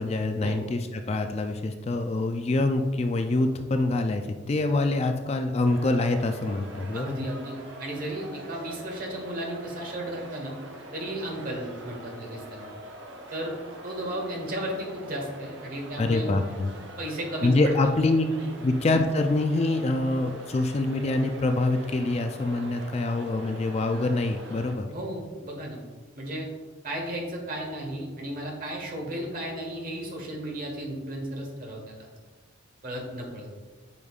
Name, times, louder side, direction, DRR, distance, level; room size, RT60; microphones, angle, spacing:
voice 1, 0.0-7.3 16.0-16.7 17.4-18.3 18.6-24.9, left 2 dB, 30° left, 6 dB, 0.3 m, -25 dB
sound 1, 5.6-24.7, right 1 dB, 60° right, 0.9 m, -44 dB
voice 2, 6.9-10.5 10.9-12.7 13.3-13.6 13.8-16.4 17.0-17.7 18.3-18.5 24.9-25.8 26.1-26.5 26.8-32.1 32.8-33.5, right 1 dB, 45° right, 0 dB, 1.3 m, -34 dB
8.2 x 5.2 x 2.4 m, 1.4 s
head